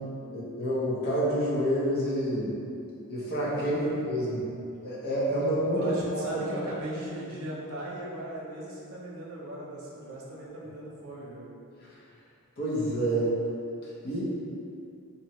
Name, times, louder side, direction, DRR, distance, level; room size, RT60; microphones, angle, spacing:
voice 1, 0.3-2.5 3.1-4.4 4.8-6.4 12.6-13.4 14.0-14.2, equal, 45° left, -7 dB, 0.7 m, -28 dB
voice 2, 3.5-4.0 5.8-11.5 14.1-14.2, right 1 dB, 75° right, -5 dB, 0.7 m, -38 dB
2.8 x 2.7 x 2.9 m, 2.6 s
head